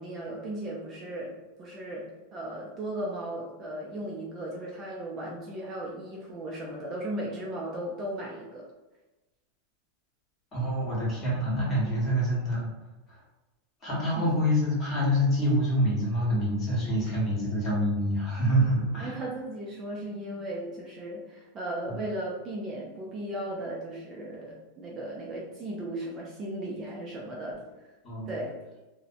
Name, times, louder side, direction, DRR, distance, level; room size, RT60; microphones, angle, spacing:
voice 1, 0.0-1.3 1.6-2.1 2.3-8.6 14.2-14.3 19.0-27.6 27.8-27.9 28.3-28.6, right 1 dB, 25° right, -3 dB, 0.3 m, -36 dB
voice 2, 10.5-12.7 13.1-13.2 13.8-19.2 21.9-22.0 28.0-28.4, equal, 20° left, -6 dB, 0.9 m, -26 dB
2.6 x 2.0 x 2.5 m, 1.1 s
supercardioid pair, 165°, 0 cm